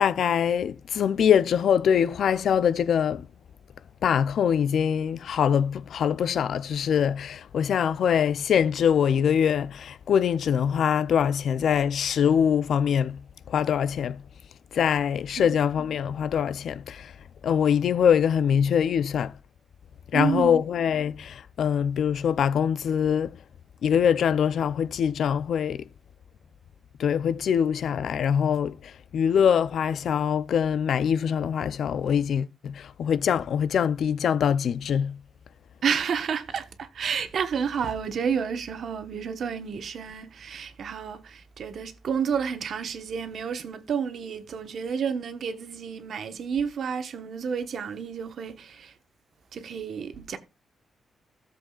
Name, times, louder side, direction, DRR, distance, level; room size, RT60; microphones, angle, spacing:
voice 1, 0.0-3.3 4.0-14.2 14.7-17.1 17.4-19.4 20.1-23.4 23.8-25.8 27.0-35.2, left 8 dB, 65° left, 0.5 m, -23 dB
voice 2, 20.1-20.6 35.8-48.9 49.5-50.4, right 7 dB, 60° right, 1.1 m, -30 dB
16.5 x 7.6 x 2.4 m
wide cardioid pair, 145°, 0 cm